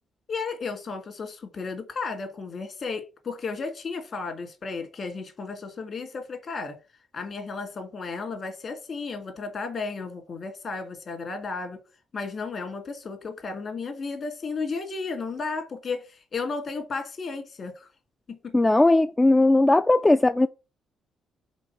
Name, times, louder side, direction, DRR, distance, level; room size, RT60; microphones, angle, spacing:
voice 1, 0.3-6.8 7.1-11.8 12.1-17.9 18.3-18.5, left 4 dB, 50° left, 2.1 m, -34 dB
voice 2, 18.5-20.5, left 2 dB, 15° left, 0.3 m, -18 dB
5.2 x 4.0 x 5.7 m
cardioid pair, 90°, 0 cm